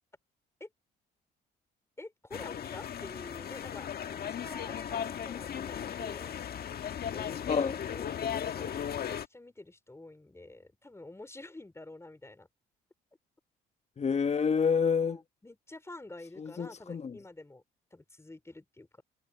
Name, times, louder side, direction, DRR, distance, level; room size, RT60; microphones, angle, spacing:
voice 1, 2.0-6.4 7.1-7.5 7.9-12.5 15.0-17.6 17.9-19.0, left 2 dB, 15° left, 4.6 m, -48 dB
sound 1, 2.3-9.3, left 9 dB, 55° left, 1.5 m, -36 dB
voice 2, 7.5-7.8 14.0-15.2 16.4-17.2, left 6 dB, 35° left, 1.1 m, -28 dB
supercardioid pair, 70°, 19 cm